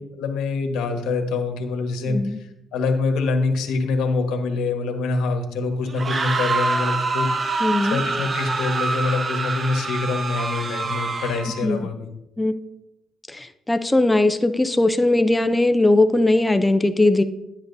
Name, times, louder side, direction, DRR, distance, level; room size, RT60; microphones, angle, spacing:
voice 1, 0.1-7.3 7.5-12.1, left 3 dB, 90° left, 4 dB, 1.3 m, -25 dB
voice 2, 2.1-2.4 7.6-8.0 11.5-11.9 12.4-12.5 13.3-17.2, left 2 dB, 15° left, 10 dB, 0.5 m, -19 dB
sound 1, 5.9-11.6, right 3 dB, 40° right, 0.8 m, -25 dB
11.0 x 10.5 x 2.7 m, 0.91 s
cardioid pair, 90°, 0 cm